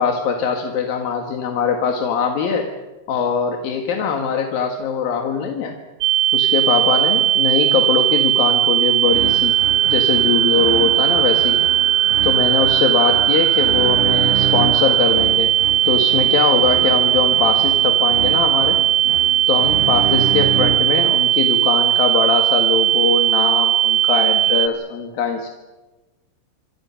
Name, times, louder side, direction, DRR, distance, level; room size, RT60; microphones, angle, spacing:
voice 1, 0.0-2.7 3.1-5.7 6.3-9.6 9.9-11.6 12.2-15.5 15.9-18.8 19.5-25.5, left 6 dB, 60° left, 3 dB, 2.8 m, -21 dB
sound 1, 6.0-24.7, right 12 dB, 90° right, 3.6 m, -17 dB
sound 2, 9.0-21.1, right 7 dB, 70° right, 3.2 m, -29 dB
sound 3, 9.1-15.1, right 3 dB, 35° right, 5.1 m, -36 dB
27.0 x 25.5 x 5.7 m, 1.2 s
omnidirectional pair, 5.5 m